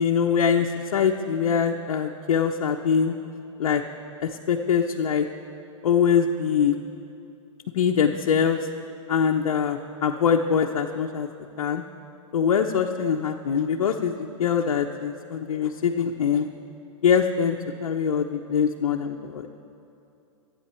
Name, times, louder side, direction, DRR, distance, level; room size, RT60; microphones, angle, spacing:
voice 1, 0.0-3.1 3.6-3.8 4.2-5.3 5.8-6.8 7.7-8.6 9.1-11.3 11.6-11.8 12.3-16.5 17.0-19.5, left 7 dB, 80° left, 1 dB, 0.8 m, -23 dB
27.0 x 9.2 x 4.4 m, 2.7 s
hypercardioid pair, 135°, 18 cm